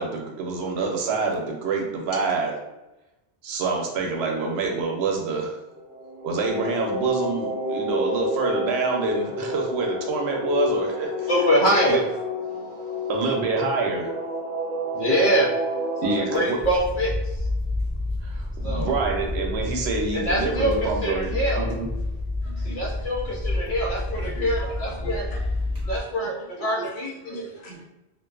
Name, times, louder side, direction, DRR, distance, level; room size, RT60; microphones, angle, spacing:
voice 1, 0.0-2.5 3.4-5.6 6.2-11.3 11.6-12.0 13.1-14.1 16.0-16.6 18.2-21.9, right 3 dB, 80° right, 1 dB, 0.8 m, -26 dB
sound 1, 5.8-16.4, equal, 5° right, 1.2 m, -30 dB
voice 2, 11.3-12.0 14.9-15.5 16.0-17.1 18.6-18.9 20.1-21.7 22.6-25.3 25.9-27.5, equal, 60° left, -2 dB, 0.7 m, -24 dB
sound 2, 16.6-26.0, left 2 dB, 25° right, 0.7 m, -29 dB
voice 3, 22.4-23.1 24.1-26.9 27.2-27.8, right 3 dB, 85° left, -2 dB, 0.9 m, -42 dB
2.4 x 2.2 x 2.3 m, 0.95 s
omnidirectional pair, 1.1 m